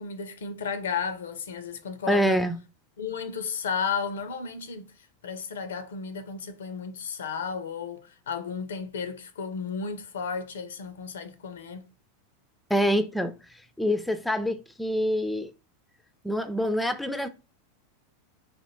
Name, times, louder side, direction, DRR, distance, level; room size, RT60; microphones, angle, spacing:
voice 1, 0.0-2.4 3.0-4.9 5.2-11.9, left 6 dB, 80° left, 0.5 m, -33 dB
voice 2, 2.1-2.6 12.7-13.3 13.8-15.5 16.2-17.3, equal, 5° left, 0.4 m, -25 dB
3.2 x 2.1 x 3.0 m
hypercardioid pair, 95°, 0 cm